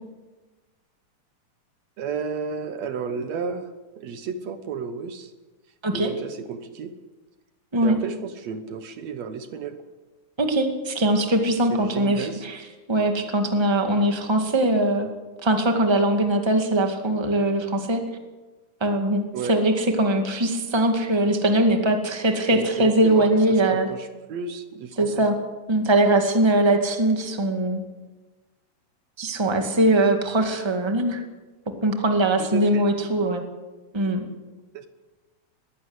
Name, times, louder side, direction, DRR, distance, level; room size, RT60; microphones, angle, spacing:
voice 1, 2.0-3.7 4.0-5.3 5.9-6.9 7.8-9.8 11.7-12.4 19.3-19.6 22.5-25.3 32.4-32.9 34.7-34.9, right 5 dB, 70° right, 9 dB, 2.2 m, -32 dB
voice 2, 10.4-15.1 15.4-18.0 18.8-23.9 25.0-25.3 25.7-27.8 29.2-31.2 31.8-33.4 33.9-34.3, right 1 dB, 10° right, 4 dB, 1.7 m, -21 dB
22.0 x 16.0 x 8.1 m, 1.2 s
omnidirectional pair, 3.3 m